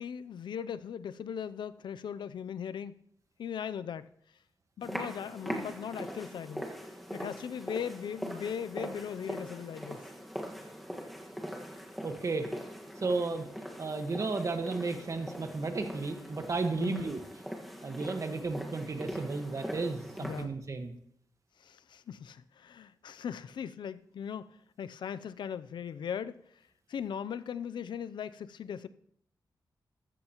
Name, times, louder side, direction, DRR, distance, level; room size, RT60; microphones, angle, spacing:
voice 1, 0.0-2.9 3.4-4.1 4.8-6.7 7.1-10.0 16.8-17.1 20.2-20.5 21.6-24.5 24.8-26.4 26.9-28.9, left 8 dB, 85° left, 0.5 m, -39 dB
sound 1, 4.8-20.5, equal, ahead, 1.6 m, -42 dB
voice 2, 12.0-12.5 13.0-13.5 13.8-17.2 17.8-20.9, right 3 dB, 45° right, 1.4 m, -33 dB
14.5 x 13.5 x 3.0 m
wide cardioid pair, 105°, 8 cm